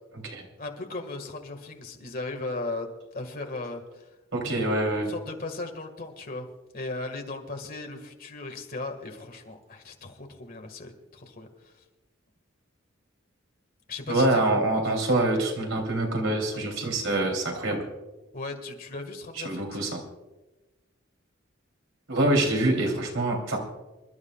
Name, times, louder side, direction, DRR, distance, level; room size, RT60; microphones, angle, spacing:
voice 1, 0.6-2.9 3.1-4.1 5.1-6.5 6.7-11.7 13.9-14.5 18.3-19.8, left 3 dB, 45° left, 4 dB, 1.8 m, -37 dB
voice 2, 4.3-5.1 14.1-17.8 19.4-20.0 22.1-23.6, right 2 dB, 85° right, 1 dB, 3.2 m, -25 dB
27.0 x 12.5 x 2.4 m, 1.1 s
head